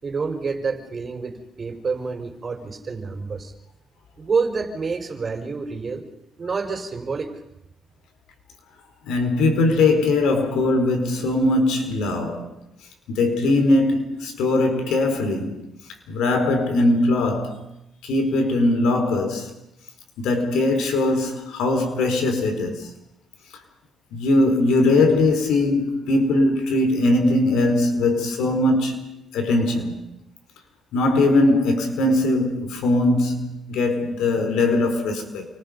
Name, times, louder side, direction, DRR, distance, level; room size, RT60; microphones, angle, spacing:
voice 1, 0.0-3.5 4.2-6.0 6.4-7.3, right 4 dB, 35° right, 5.0 m, -28 dB
voice 2, 9.1-12.5 13.1-15.7 16.1-17.6 18.0-19.5 20.2-22.9 24.1-30.0 30.9-35.5, left 2 dB, 85° left, 4.9 m, -20 dB
28.5 x 25.5 x 5.5 m
cardioid pair, 90°, 0 cm